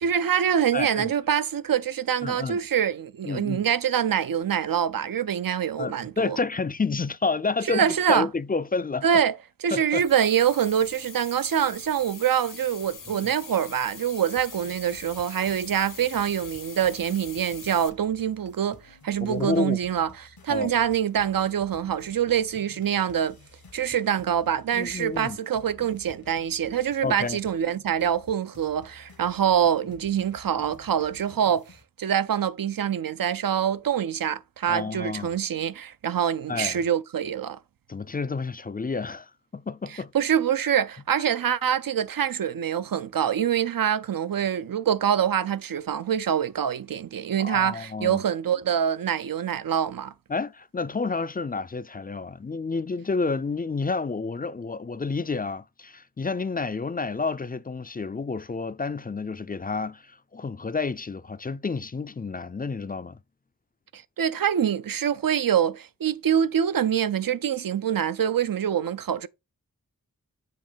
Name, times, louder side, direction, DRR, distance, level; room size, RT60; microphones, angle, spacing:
voice 1, 0.0-6.4 7.7-8.3 9.0-9.3 9.6-23.4 23.7-31.6 32.0-37.6 40.1-50.1 63.9-69.3, right 9 dB, 70° right, 0.5 m, -25 dB
voice 2, 0.7-1.1 2.2-2.6 3.2-3.6 5.8-9.0 9.7-10.0 13.1-13.2 19.2-19.8 20.5-20.7 24.7-25.4 27.0-27.4 34.7-35.3 36.5-36.8 37.9-40.1 40.6-40.7 47.4-48.2 50.3-63.2, left 4 dB, 25° left, 0.3 m, -30 dB
sound 1, 10.0-17.9, left 6 dB, 60° left, 0.8 m, -43 dB
sound 2, 14.4-31.8, left 4 dB, 80° left, 1.2 m, -52 dB
7.5 x 2.7 x 5.0 m
wide cardioid pair, 55°, 35 cm